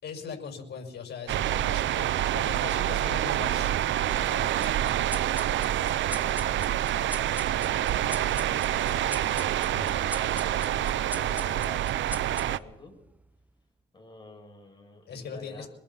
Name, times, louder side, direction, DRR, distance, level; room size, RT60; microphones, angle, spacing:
voice 1, 0.0-2.1 2.3-3.7 4.2-4.7 9.7-9.9 15.1-15.7, left 5 dB, 55° left, 5 dB, 5.8 m, -40 dB
sound 1, 1.3-12.6, right 12 dB, 70° right, 0.8 m, -27 dB
sound 2, 4.6-13.5, right 1 dB, 5° right, 1.0 m, -43 dB
voice 2, 7.1-12.9 13.9-15.7, left 2 dB, 25° left, 2 dB, 7.5 m, -49 dB
24.0 x 21.5 x 5.7 m, 0.76 s
cardioid pair, 90°, 20 cm